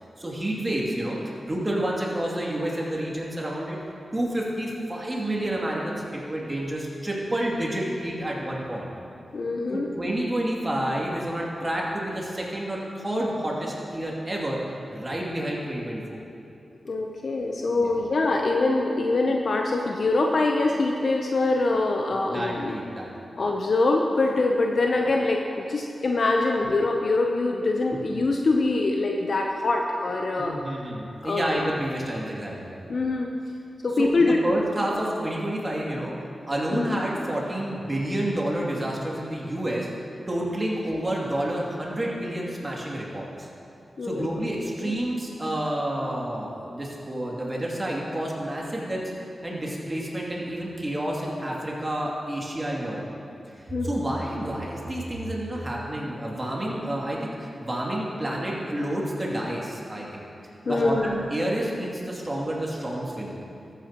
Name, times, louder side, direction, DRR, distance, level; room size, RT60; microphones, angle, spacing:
voice 1, 0.2-1.2 1.5-3.8 4.1-8.9 9.7-14.6 14.9-16.2 17.8-18.0 22.1-23.3 27.9-28.0 30.4-32.8 34.0-36.1 36.5-39.9 40.3-43.5 44.0-49.0 49.4-53.0 53.5-60.2 60.7-63.5, right 1 dB, 30° right, -3 dB, 2.5 m, -29 dB
voice 2, 9.3-9.9 16.8-22.7 23.4-30.6 31.2-31.6 32.9-33.3 33.8-34.4 36.7-37.0 44.0-44.3 44.8-44.9 53.7-54.0 60.7-61.2, left 2 dB, 65° left, 1 dB, 0.7 m, -24 dB
14.0 x 8.9 x 2.9 m, 2.6 s
cardioid pair, 40°, 0 cm